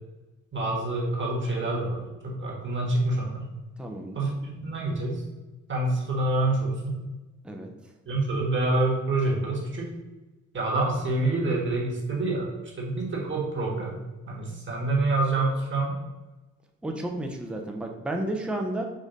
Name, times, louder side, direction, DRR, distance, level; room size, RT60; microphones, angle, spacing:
voice 1, 0.5-3.5 4.1-5.2 5.7-7.0 8.0-9.9 10.5-14.0 14.3-16.0, right 2 dB, 40° right, -2 dB, 1.6 m, -27 dB
voice 2, 3.8-4.3 7.4-7.7 16.8-18.8, right 1 dB, 5° right, 3 dB, 0.5 m, -32 dB
5.2 x 2.5 x 3.9 m, 1.1 s
cardioid pair, 90°, 30 cm